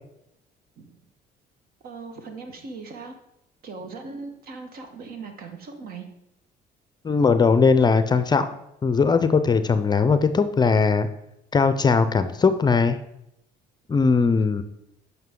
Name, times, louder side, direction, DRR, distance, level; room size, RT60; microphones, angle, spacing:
voice 1, 1.8-3.2 3.6-6.1, right 4 dB, 60° right, 5 dB, 1.4 m, -39 dB
voice 2, 7.0-8.5 8.8-11.1 11.5-13.0 13.9-14.6, left 5 dB, 25° left, 11 dB, 0.5 m, -19 dB
9.2 x 5.8 x 3.7 m, 0.82 s
cardioid pair, 110°, 17 cm